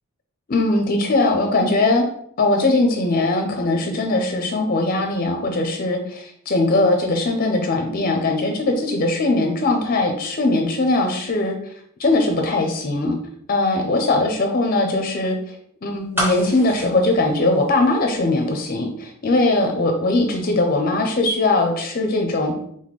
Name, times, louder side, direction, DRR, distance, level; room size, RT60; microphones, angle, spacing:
voice 1, 0.5-2.1 2.4-11.5 12.0-13.2 13.5-15.5 15.8-22.5, left 2 dB, 40° left, 4 dB, 0.5 m, -20 dB
sound 1, 16.1-18.2 18.5-18.6, left 1 dB, 10° right, 1.0 m, -28 dB
4.1 x 3.6 x 3.1 m, 0.68 s
head